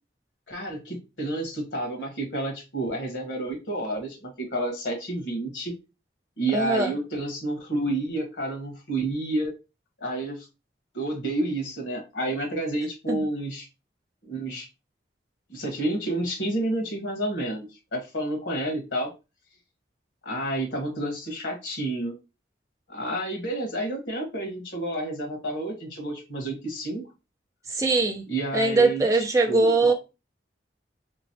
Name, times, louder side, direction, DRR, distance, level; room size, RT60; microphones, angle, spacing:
voice 1, 0.5-5.7 6.4-9.5 10.0-10.5 10.9-13.7 14.2-14.7 15.5-19.1 20.2-22.1 22.9-27.0 28.3-29.0 29.5-29.9, right 1 dB, 85° left, 1.2 m, -30 dB
voice 2, 6.5-6.9 13.1-13.3 27.7-28.2 28.5-29.9, right 3 dB, 15° right, 0.5 m, -21 dB
3.3 x 3.0 x 2.8 m
head